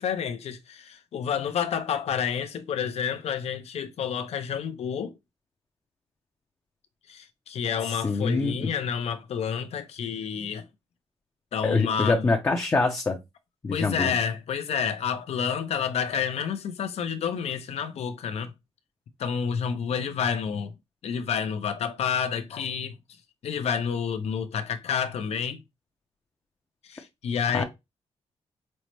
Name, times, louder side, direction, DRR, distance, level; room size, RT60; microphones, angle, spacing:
voice 1, 0.0-5.2 7.1-10.7 11.5-12.3 13.7-18.5 19.2-20.7 21.0-23.0 23.4-25.6 26.8-27.6, left 7 dB, 65° left, 0.6 m, -29 dB
voice 2, 7.9-8.7 11.6-13.2 13.6-14.1 27.5-27.6, left 3 dB, 20° left, 0.5 m, -25 dB
5.3 x 2.1 x 3.0 m
wide cardioid pair, 160°, 12 cm